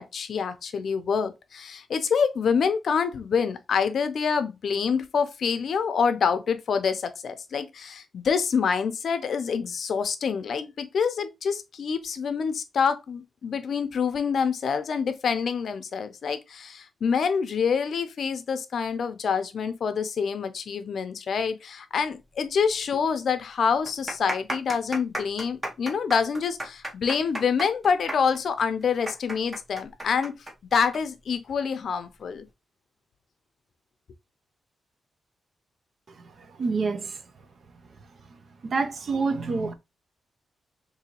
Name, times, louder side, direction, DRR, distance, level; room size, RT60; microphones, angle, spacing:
voice 1, 0.0-30.4 30.7-32.5, left 6 dB, 60° left, 0.5 m, -26 dB
sound 1, 22.7-22.8 23.0-23.1 23.7-31.0 31.3-31.4 32.1-32.4, right 1 dB, 20° right, 0.9 m, -34 dB
voice 2, 36.6-37.2 38.6-39.7, right 4 dB, 50° right, 0.5 m, -27 dB
3.8 x 2.6 x 2.8 m
wide cardioid pair, 120°, 0 cm